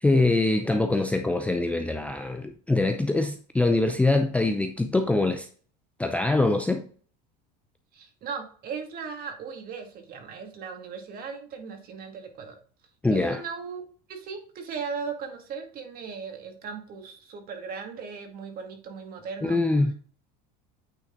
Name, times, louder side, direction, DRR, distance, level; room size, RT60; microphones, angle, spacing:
voice 1, 0.0-5.5 6.0-6.8 13.0-13.4 19.4-19.9, left 2 dB, 5° left, 0.5 m, -24 dB
voice 2, 7.9-12.6 13.1-13.8 14.1-19.6, right 5 dB, 45° right, 2.1 m, -37 dB
9.0 x 4.0 x 3.8 m
supercardioid pair, 120°, 21 cm